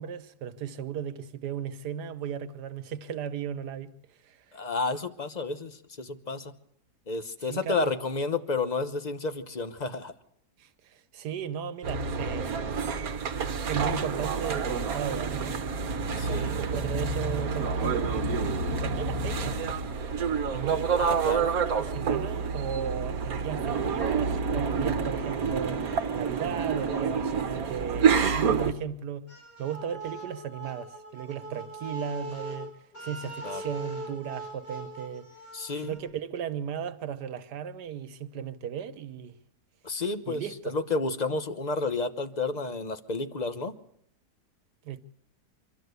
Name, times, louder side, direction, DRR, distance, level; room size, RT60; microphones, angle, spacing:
voice 1, 0.0-3.9 4.2-4.4 7.5-7.9 10.6-12.9 13.7-15.6 16.3-18.1 18.7-19.6 20.5-25.8 26.1-29.3 29.6-32.7 33.0-35.3 35.8-39.4 40.3-40.8 44.8-45.0, right 8 dB, 75° right, 1.5 m, -36 dB
voice 2, 4.5-6.5 7.1-10.1 16.2-16.6 21.0-21.5 33.4-33.6 35.5-35.9 39.8-43.7, left 3 dB, 30° left, 0.9 m, -31 dB
sound 1, 11.8-28.7, right 5 dB, 60° right, 1.5 m, -28 dB
sound 2, 29.3-36.0, right 1 dB, 80° left, 7.2 m, -41 dB
25.5 x 13.0 x 8.1 m
omnidirectional pair, 1.8 m